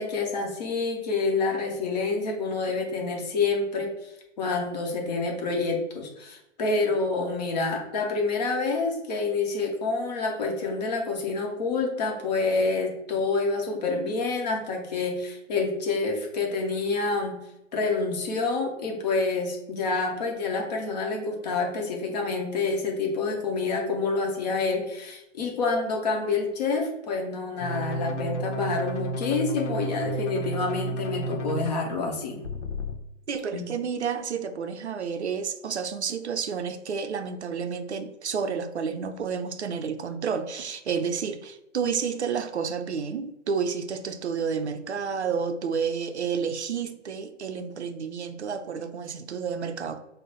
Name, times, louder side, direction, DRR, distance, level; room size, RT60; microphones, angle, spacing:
voice 1, 0.0-17.4 17.7-32.4 33.5-33.7, left 3 dB, 35° left, 1.0 m, -28 dB
sound 1, 27.6-31.7 32.4-33.0, right 1 dB, 70° left, 0.8 m, -32 dB
voice 2, 33.3-50.0, right 6 dB, 60° right, 0.6 m, -30 dB
5.1 x 2.1 x 3.9 m
figure-of-eight pair, 135°, 38 cm